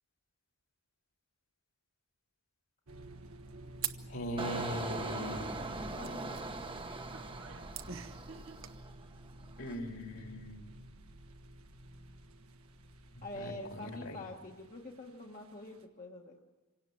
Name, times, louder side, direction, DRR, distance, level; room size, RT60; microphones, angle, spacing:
sound 1, 2.9-15.8, right 1 dB, 80° right, 1.5 m, -52 dB
sound 2, 3.8-8.8, right 9 dB, 60° right, 1.0 m, -46 dB
voice 1, 4.1-5.7 9.6-10.8 13.1-14.2, equal, 65° left, 3 dB, 2.7 m, -40 dB
Engine, 4.4-9.0 9.4-9.7, right 2 dB, 25° right, 1.0 m, -41 dB
voice 2, 6.0-6.4 13.2-16.4, left 2 dB, 35° left, 0 dB, 1.3 m, -45 dB
26.5 x 17.5 x 7.7 m, 1.2 s
head